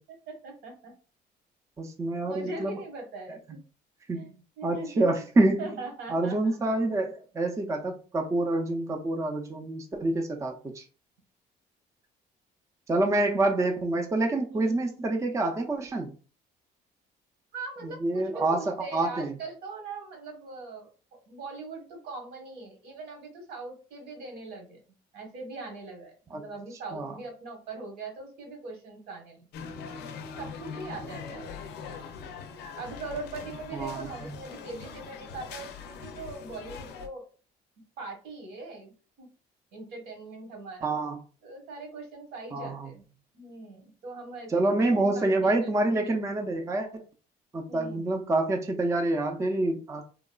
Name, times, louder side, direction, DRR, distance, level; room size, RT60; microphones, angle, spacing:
voice 1, 0.1-1.0 2.2-3.6 4.1-4.3 4.6-5.2 5.6-6.5 14.5-14.9 17.5-24.8 25.1-29.5 30.4-31.5 32.8-37.3 38.0-39.3 39.7-41.0 41.4-43.0 43.3-44.6 44.9-45.7 46.0-46.1 47.7-48.1, right 3 dB, 80° right, 1.2 m, -41 dB
voice 2, 1.8-2.8 4.1-4.3 4.6-5.7 6.1-10.8 12.9-16.2 18.0-19.4 26.3-26.4 26.9-27.1 33.7-34.4 40.8-41.2 42.5-42.9 44.5-47.0 47.5-50.0, right 2 dB, 15° right, 0.4 m, -27 dB
sound 1, 29.5-37.1, left 5 dB, 75° left, 0.4 m, -42 dB
2.9 x 2.3 x 2.3 m
cardioid pair, 110°, 17 cm